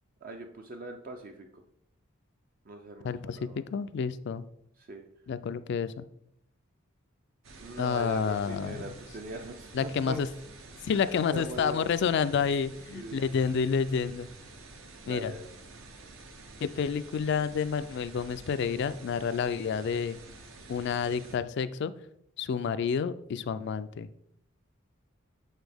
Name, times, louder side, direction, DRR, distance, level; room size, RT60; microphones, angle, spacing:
voice 1, 0.2-1.6 2.7-3.6 4.8-5.1 7.6-10.2 10.9-11.9 12.9-13.3 15.0-15.5, right 2 dB, 45° right, 4 dB, 0.4 m, -41 dB
voice 2, 3.0-4.4 5.3-6.0 7.8-8.8 9.7-10.3 10.8-14.3 15.1-15.3 16.6-20.2 20.7-21.9 22.4-24.1, left 6 dB, 55° left, 13 dB, 0.3 m, -29 dB
sound 1, 7.4-21.4, right 3 dB, 75° right, 0.8 m, -49 dB
8.1 x 4.1 x 3.4 m, 0.74 s
head